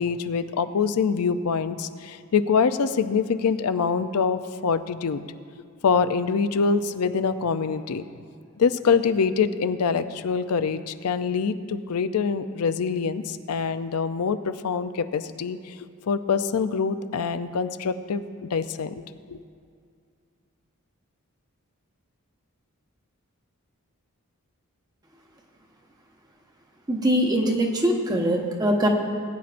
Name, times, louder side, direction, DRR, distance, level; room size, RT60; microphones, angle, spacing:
voice 1, 0.0-5.2 5.8-8.0 8.6-15.7 16.1-19.0 19.3-19.4, left 5 dB, 80° left, 11 dB, 0.5 m, -25 dB
voice 2, 26.9-28.9, equal, 15° right, 1 dB, 1.0 m, -22 dB
20.0 x 9.5 x 2.5 m, 2.2 s
head